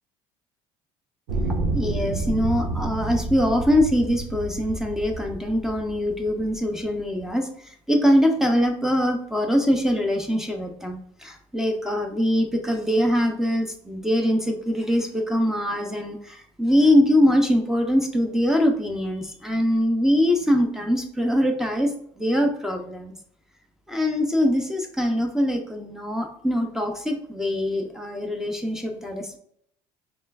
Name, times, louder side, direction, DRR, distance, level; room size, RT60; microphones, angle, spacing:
sound 1, 1.3-6.5 7.3-7.4, right 2 dB, 85° right, 1.1 m, -29 dB
voice 1, 1.7-23.2 23.9-29.4, equal, 5° right, 3 dB, 0.4 m, -23 dB
5.3 x 3.3 x 2.3 m, 0.67 s
cardioid pair, 140°, 11 cm